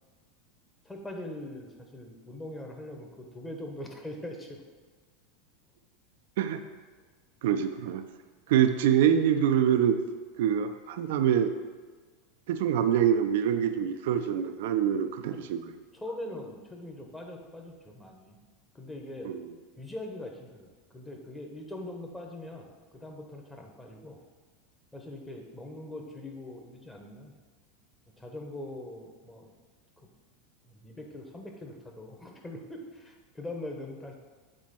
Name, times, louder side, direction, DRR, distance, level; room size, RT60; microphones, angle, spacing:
voice 1, 0.8-4.6 15.3-15.4 15.9-18.4 18.7-19.3 19.8-24.2 24.9-27.3 28.2-29.5 30.7-34.1, left 1 dB, 10° left, 2 dB, 1.2 m, -42 dB
voice 2, 7.4-8.0 8.5-10.1 10.4-11.5 12.5-15.7 19.2-19.4, right 9 dB, 65° right, 8 dB, 0.4 m, -25 dB
7.5 x 4.4 x 4.4 m, 1.4 s
hypercardioid pair, 85°, 0 cm